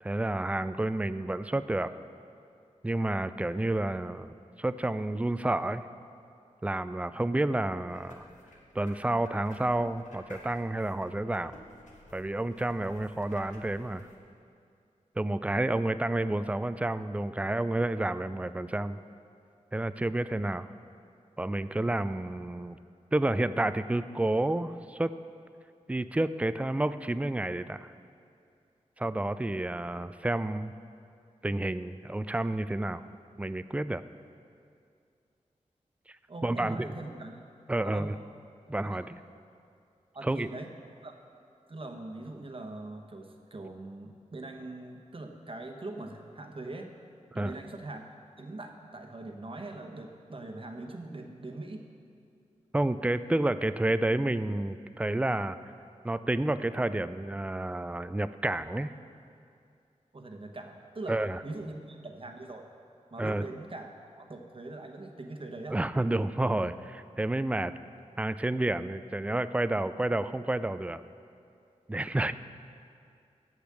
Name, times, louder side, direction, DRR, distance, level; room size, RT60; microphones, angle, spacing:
voice 1, 0.0-1.9 2.8-5.8 6.6-8.3 8.7-11.6 12.1-14.1 15.2-19.0 19.7-20.7 21.4-22.8 23.1-25.1 25.9-27.9 29.0-30.7 31.4-33.1 33.4-34.0 36.4-36.9 37.7-38.2 38.7-39.2 40.2-40.5 47.3-47.5 52.7-55.6 56.0-58.9 61.1-61.4 63.2-63.4 65.7-67.7 68.2-71.0 71.9-72.3, right 1 dB, 10° right, 13 dB, 0.3 m, -30 dB
sound 1, 7.6-14.2, left 1 dB, 75° left, 1.6 m, -54 dB
voice 2, 36.3-37.4 37.8-38.1 38.8-39.0 40.1-40.7 41.0-41.1 41.7-46.9 47.3-51.9 60.1-61.2 61.4-62.6 63.1-65.8, right 2 dB, 45° right, 4 dB, 1.0 m, -42 dB
8.4 x 8.0 x 7.3 m, 2.4 s
wide cardioid pair, 75°, 13 cm